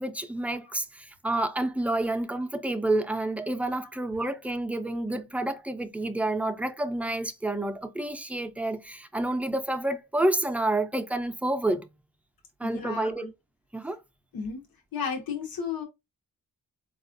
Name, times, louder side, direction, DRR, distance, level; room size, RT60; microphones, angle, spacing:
voice 1, 0.0-11.9 12.6-13.3 13.7-14.0, right 1 dB, 5° right, 0.4 m, -29 dB
voice 2, 12.6-13.3 14.3-14.6 14.9-15.8, left 6 dB, 85° left, 0.8 m, -33 dB
4.2 x 2.3 x 2.5 m
wide cardioid pair, 110°, 35 cm